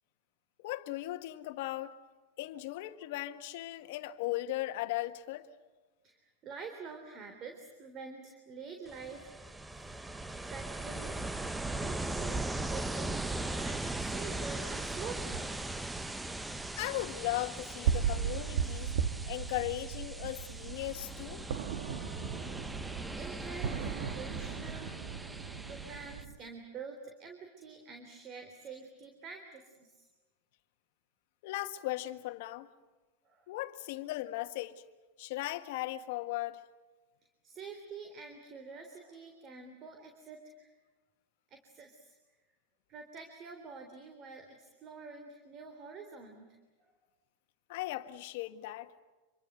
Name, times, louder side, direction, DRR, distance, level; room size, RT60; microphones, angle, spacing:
voice 1, 0.6-2.0 2.4-5.5 16.8-18.9 19.3-21.4 31.4-32.7 33.5-34.8 35.2-36.6 47.7-48.9, left 16 dB, 65° left, 1.6 m, -37 dB
voice 2, 6.0-9.6 10.2-11.2 11.7-15.5 23.2-25.0 25.3-30.1 33.2-33.5 37.4-40.7 41.5-42.1 42.9-46.6, right 5 dB, 35° right, 3.6 m, -47 dB
Ocean, 8.9-26.2, right 2 dB, 5° right, 0.9 m, -39 dB
sound 1, 11.9-26.4, right 7 dB, 75° right, 1.6 m, -38 dB
26.5 x 23.5 x 8.0 m
supercardioid pair, 130°, 0 cm